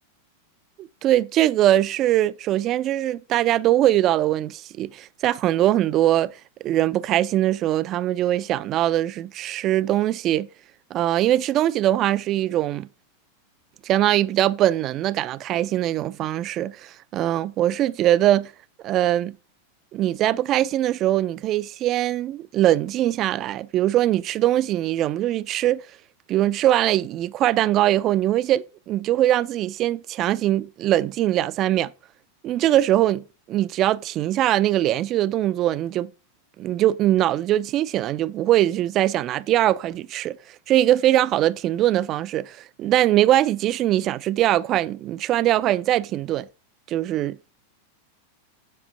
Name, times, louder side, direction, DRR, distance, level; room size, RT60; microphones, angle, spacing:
voice 1, 0.8-6.4 6.6-10.5 10.9-12.9 13.8-18.5 18.8-19.4 19.9-25.8 26.3-31.9 32.4-36.1 36.6-46.5 46.9-47.5, right 13 dB, 35° right, 0.3 m, -22 dB
7.6 x 3.3 x 6.3 m
figure-of-eight pair, 90°, 0 cm